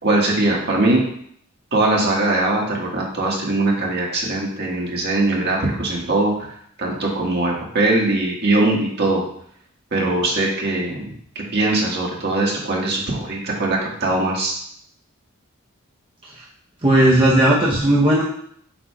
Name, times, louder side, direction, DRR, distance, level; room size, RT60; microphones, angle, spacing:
voice 1, 0.0-1.0 1.7-6.5 6.8-9.2 9.9-11.0 11.3-14.5, right 2 dB, 50° right, -2 dB, 1.6 m, -21 dB
voice 2, 16.8-18.2, right 1 dB, 25° right, -5 dB, 0.8 m, -15 dB
7.5 x 6.2 x 2.3 m, 0.66 s
head